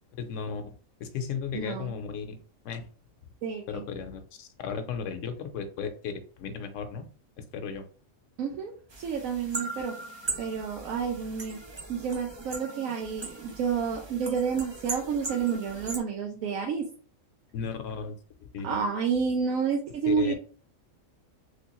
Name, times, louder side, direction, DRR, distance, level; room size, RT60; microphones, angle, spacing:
voice 1, 0.1-0.6 1.0-2.9 3.7-7.1 7.4-7.9 17.5-18.2 18.5-18.8 20.1-20.3, left 6 dB, 70° left, 7 dB, 1.0 m, -35 dB
voice 2, 1.5-1.9 3.4-3.8 8.4-8.7 9.0-9.9 10.4-11.6 11.9-16.9 18.6-20.3, right 6 dB, 90° right, 1 dB, 1.0 m, -29 dB
sound 1, 8.9-16.0, right 3 dB, 50° right, 0.3 m, -39 dB
3.2 x 3.1 x 2.9 m, 0.41 s
omnidirectional pair, 1.4 m